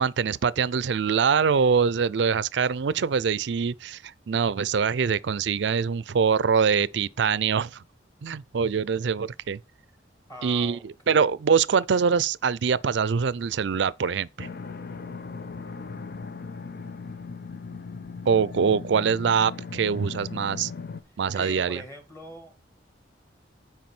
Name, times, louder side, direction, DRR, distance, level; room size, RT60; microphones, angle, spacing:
voice 1, 0.0-7.8 8.2-9.6 10.4-14.5 18.3-20.7 21.2-21.8, right 6 dB, 70° right, 0.4 m, -24 dB
voice 2, 10.3-11.3 21.0-22.5, equal, 15° left, 1.8 m, -42 dB
sound 1, 14.4-21.0, left 4 dB, 55° left, 0.6 m, -38 dB
9.3 x 4.6 x 4.4 m
head